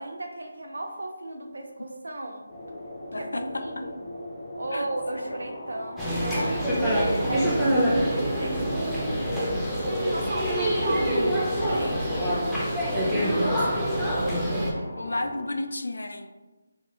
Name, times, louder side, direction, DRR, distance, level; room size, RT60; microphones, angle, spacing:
voice 1, 0.0-2.5 3.2-4.0 4.5-7.6 8.1-9.1 9.6-12.6 13.1-14.9, right 2 dB, 85° right, 3 dB, 0.6 m, -36 dB
sound 1, 2.5-15.5, left 1 dB, 30° left, 0.7 m, -40 dB
voice 2, 3.1-3.6 4.7-4.9 6.8-7.3 7.7-7.8 11.9-12.9 15.0-16.3, left 2 dB, 80° left, 7 dB, 0.3 m, -34 dB
sound 2, 6.0-14.7, equal, ahead, 0.4 m, -25 dB
3.8 x 2.3 x 2.9 m, 1.2 s
figure-of-eight pair, 170°, 0 cm